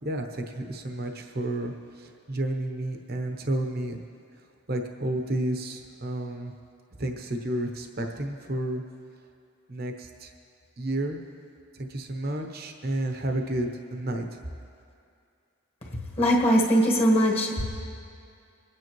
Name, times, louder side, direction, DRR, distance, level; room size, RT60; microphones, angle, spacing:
voice 1, 0.0-4.0 4.7-6.5 7.0-8.8 9.7-10.3 10.8-11.2 11.7-14.4, right 1 dB, 45° right, 3 dB, 0.9 m, -31 dB
voice 2, 16.2-17.6, equal, 30° left, -2 dB, 1.5 m, -21 dB
25.5 x 9.3 x 3.1 m, 2.4 s
head